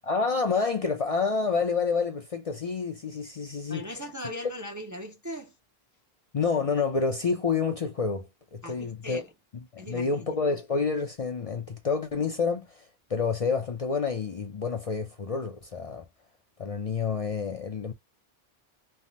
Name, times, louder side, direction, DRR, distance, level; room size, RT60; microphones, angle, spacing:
voice 1, 0.0-3.8 6.3-9.2 9.7-16.0 16.6-17.9, left 5 dB, 45° left, 0.5 m, -28 dB
voice 2, 3.7-5.6 8.6-9.3 9.8-10.4, equal, 25° right, 0.4 m, -39 dB
3.4 x 2.1 x 2.6 m
omnidirectional pair, 1.0 m